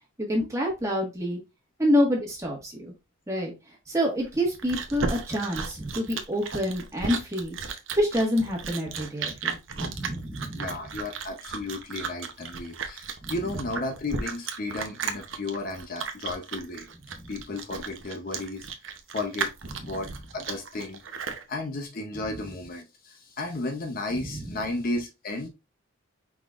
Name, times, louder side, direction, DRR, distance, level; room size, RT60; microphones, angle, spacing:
voice 1, 0.3-1.4 1.8-2.9 3.3-3.5 3.9-7.6 8.0-10.7 13.2-13.3 17.1-17.3 19.8-19.9 24.2-24.4, equal, 15° right, -1 dB, 1.5 m, -27 dB
Chewing mastication, 4.2-21.4, right 5 dB, 70° right, 0.7 m, -35 dB
voice 2, 10.5-16.9 17.3-18.7 19.1-19.5 19.8-21.0 21.5-25.5, left 2 dB, 45° left, 3 dB, 0.7 m, -33 dB
4.9 x 3.9 x 2.4 m, 0.25 s
head